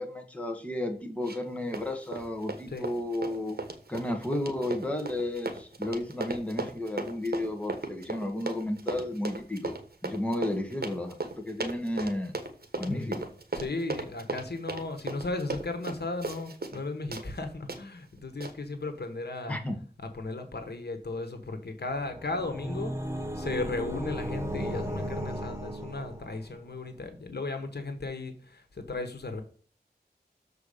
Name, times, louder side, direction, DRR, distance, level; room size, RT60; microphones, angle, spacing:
voice 1, 0.0-3.6 3.9-9.8 10.0-12.4 12.8-13.3 19.5-19.8, left 1 dB, 10° left, 2 dB, 1.9 m, -32 dB
Run, 1.2-1.5 1.7-16.8 17.1-17.3 17.7-17.8 18.4-18.5, right 3 dB, 65° right, 1.3 m, -36 dB
voice 2, 13.5-19.6 20.1-22.9 23.3-29.4, left 3 dB, 75° left, 7 dB, 1.4 m, -35 dB
sound 1, 21.9-26.6, equal, 15° right, 1.4 m, -35 dB
7.0 x 4.7 x 6.7 m, 0.41 s
wide cardioid pair, 60°, 17 cm